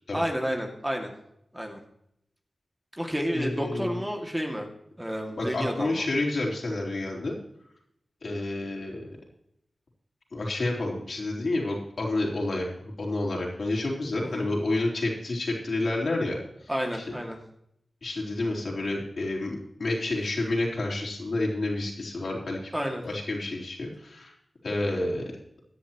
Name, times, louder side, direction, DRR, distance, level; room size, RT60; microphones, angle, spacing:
voice 1, 0.1-1.1 1.5-1.8 3.0-4.7 5.0-6.1 14.2-14.5 16.7-17.4 22.7-23.1, equal, 10° right, 2 dB, 2.2 m, -30 dB
voice 2, 3.3-4.0 5.4-7.3 8.2-9.2 10.3-12.7 13.0-17.2 18.0-22.7 23.0-24.3 24.6-25.3, left 2 dB, 70° left, -2 dB, 4.0 m, -29 dB
16.5 x 10.0 x 3.0 m, 0.74 s
wide cardioid pair, 65°, 0 cm